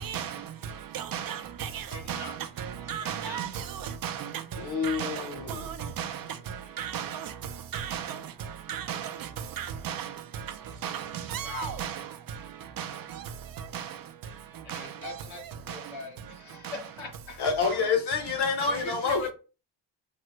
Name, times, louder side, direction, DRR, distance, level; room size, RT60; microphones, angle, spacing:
voice 1, 0.9-1.4 2.1-2.2 2.9-3.5 4.0-4.1 4.8-5.1 6.0-6.1 6.8-7.1 7.7-8.0 8.7-9.0 9.6-10.0 10.8-10.9 11.3-11.9, right 9 dB, 50° right, 0.5 m, -33 dB
voice 2, 1.9-2.3 3.0-3.4 11.4-11.8 14.6-17.4 18.7-19.3, left 3 dB, 85° left, 1.4 m, -40 dB
voice 3, 4.6-5.7 17.4-19.2, left 5 dB, 55° left, 1.0 m, -28 dB
3.7 x 2.1 x 3.0 m
cardioid pair, 100°, 46 cm